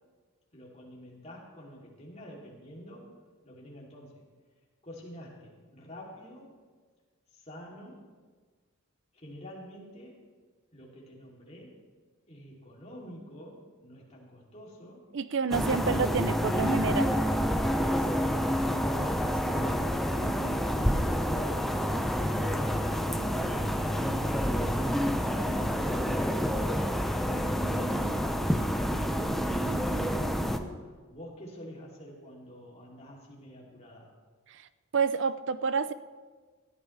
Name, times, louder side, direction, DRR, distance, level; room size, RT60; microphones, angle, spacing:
voice 1, 0.5-3.1 3.4-4.2 4.8-6.6 7.3-8.0 9.1-10.2 10.7-11.8 12.3-15.1 17.7-23.9 29.2-34.1, equal, 30° left, -3 dB, 2.9 m, -48 dB
voice 2, 15.1-17.2 34.5-34.6 34.9-35.9, right 5 dB, 60° right, 14 dB, 0.5 m, -29 dB
sound 1, 15.5-30.6, equal, ahead, 0.7 m, -28 dB
18.5 x 14.0 x 3.3 m, 1.5 s
head